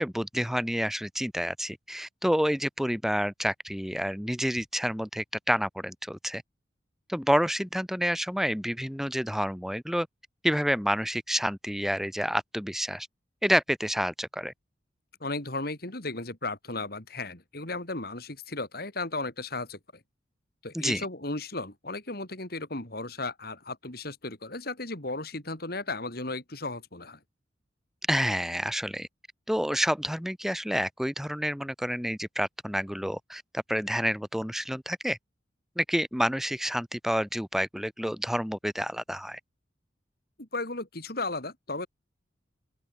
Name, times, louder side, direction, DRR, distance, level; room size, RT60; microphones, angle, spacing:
voice 1, 0.0-6.4 7.1-10.1 10.4-13.1 13.4-14.5 20.7-21.0 28.1-29.1 29.5-35.2 35.8-39.4, equal, ahead, 6.4 m, -29 dB
voice 2, 15.2-19.8 20.6-27.2 40.4-41.9, left 2 dB, 55° left, 4.0 m, -35 dB
open air
head